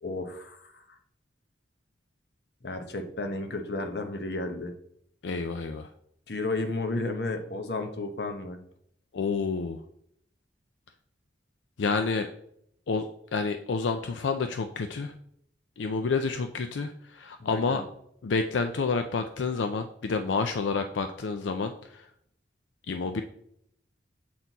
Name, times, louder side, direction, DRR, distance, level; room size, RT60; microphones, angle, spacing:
voice 1, 0.0-1.0 2.6-4.7 6.3-8.6 17.4-17.8, left 2 dB, 60° left, 6 dB, 0.9 m, -33 dB
voice 2, 5.2-5.9 9.1-9.8 11.8-12.3 12.9-15.1 15.8-17.8 18.2-22.1 22.9-23.2, left 4 dB, 85° left, 7 dB, 0.5 m, -29 dB
7.5 x 4.4 x 4.0 m, 0.70 s
head